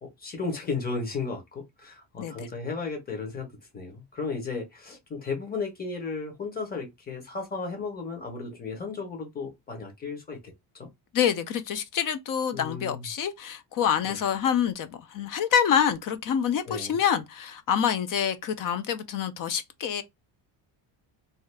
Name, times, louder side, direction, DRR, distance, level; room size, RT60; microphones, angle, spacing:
voice 1, 0.0-3.5 3.7-10.9 12.5-13.1 14.1-14.2 16.6-17.0, left 4 dB, 20° left, 0.9 m, -34 dB
voice 2, 11.1-20.0, left 8 dB, 45° left, 0.5 m, -26 dB
2.7 x 2.4 x 3.3 m
cardioid pair, 160°, 47 cm